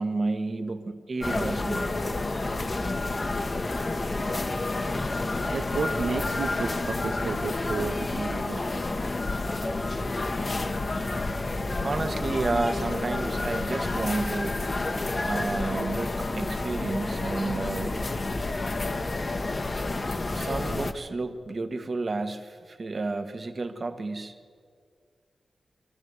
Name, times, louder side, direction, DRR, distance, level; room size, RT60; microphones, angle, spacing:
voice 1, 0.0-1.9 2.8-3.0 11.0-11.1 11.6-14.8 15.2-18.0 20.3-24.4, right 3 dB, 50° right, 7 dB, 1.6 m, -31 dB
sound 1, 1.2-20.9, left 2 dB, 40° left, 1.3 m, -29 dB
voice 2, 5.5-8.7, right 5 dB, 85° right, 3 dB, 0.9 m, -32 dB
25.0 x 13.5 x 8.2 m, 2.1 s
cardioid pair, 60°, 0 cm